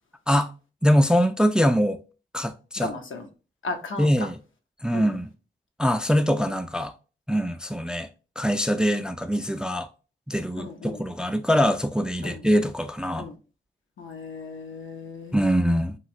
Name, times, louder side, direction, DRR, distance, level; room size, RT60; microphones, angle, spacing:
voice 1, 0.8-2.0 2.3-2.9 4.0-4.4 4.8-5.3 5.8-6.9 7.3-8.1 8.4-9.9 10.3-13.3 15.3-16.0, equal, 5° right, 0.3 m, -23 dB
voice 2, 2.8-3.3 3.6-4.1 4.9-5.2 10.6-11.0 12.2-12.4 13.2-13.4 14.0-15.5, left 3 dB, 70° left, 0.7 m, -35 dB
3.1 x 2.4 x 2.7 m
cardioid pair, 45°, 21 cm